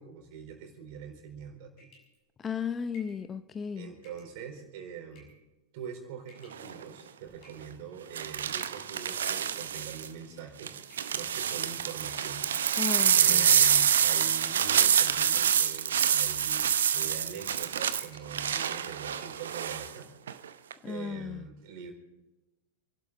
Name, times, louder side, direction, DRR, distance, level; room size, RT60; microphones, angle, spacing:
voice 1, 0.0-1.7 3.8-5.3 5.7-10.7 11.1-12.5 13.1-16.7 16.9-20.1 20.8-21.9, right 7 dB, 45° right, 4 dB, 4.2 m, -43 dB
sound 1, 1.8-2.2 2.9-3.2 4.0-4.3 5.1-5.5 6.2-6.7 7.4-7.9 8.6-8.9 9.7-10.3 10.9-11.3 12.1-12.7 13.2-13.9 14.4-14.8 15.0-15.3 15.6-16.2 16.8-17.1 17.4-17.6 17.9-18.3 18.7-18.8 19.1-19.5, equal, 40° left, 6.3 m, -58 dB
voice 2, 2.4-3.9 12.8-13.5 20.8-21.5, left 6 dB, 20° left, 12 dB, 0.6 m, -35 dB
sound 2, 6.5-6.8 8.2-10.1 10.6-19.9 20.3-20.7, right 8 dB, 65° right, 0.7 m, -26 dB
28.5 x 12.0 x 4.0 m, 1.1 s
figure-of-eight pair, 90°, 0 cm